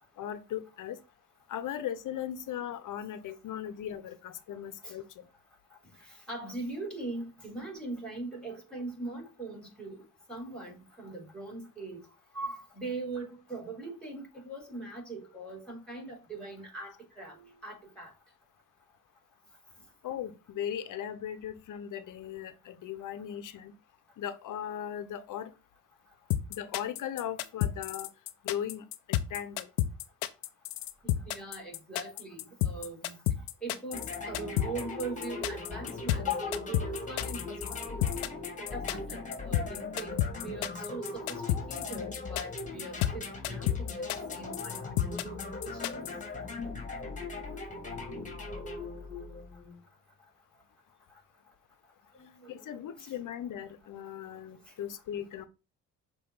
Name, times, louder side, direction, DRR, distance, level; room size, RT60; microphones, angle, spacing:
voice 1, 0.2-1.0 1.5-5.1 20.0-23.7 24.2-25.5 26.5-28.1 28.4-29.7 36.2-36.5 52.5-55.4, left 10 dB, 60° left, 1.0 m, -38 dB
voice 2, 6.0-12.0 12.3-18.1 31.0-33.2 33.6-38.2 38.7-46.1 52.2-52.6 53.0-53.1, right 3 dB, 5° left, 3.7 m, -41 dB
sound 1, 26.3-46.1, left 13 dB, 90° left, 0.6 m, -31 dB
sound 2, 33.9-49.8, left 3 dB, 20° left, 2.0 m, -39 dB
6.5 x 3.1 x 5.6 m
supercardioid pair, 60°, 35 cm